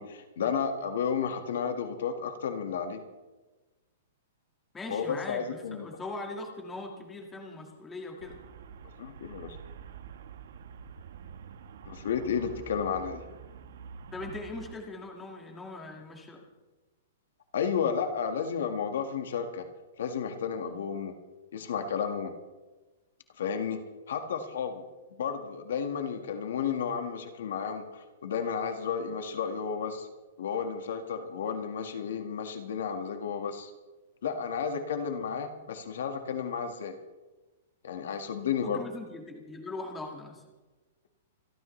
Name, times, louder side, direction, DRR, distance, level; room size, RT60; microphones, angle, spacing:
voice 1, 0.0-3.0 4.9-5.9 9.0-9.6 11.9-13.2 17.5-19.7 20.0-21.1 21.5-22.3 23.4-23.8 24.1-24.9 25.2-30.1 30.4-33.7 34.2-37.0 37.8-38.8, left 7 dB, 70° left, 6 dB, 1.7 m, -32 dB
voice 2, 4.7-5.4 5.7-8.4 14.1-16.5 38.6-40.4, left 2 dB, 10° left, 1 dB, 2.0 m, -40 dB
Traffic noise roadway noise, 8.2-14.8, right 7 dB, 65° right, 1.3 m, -47 dB
27.0 x 13.0 x 3.3 m, 1.2 s
hypercardioid pair, 170°, 0 cm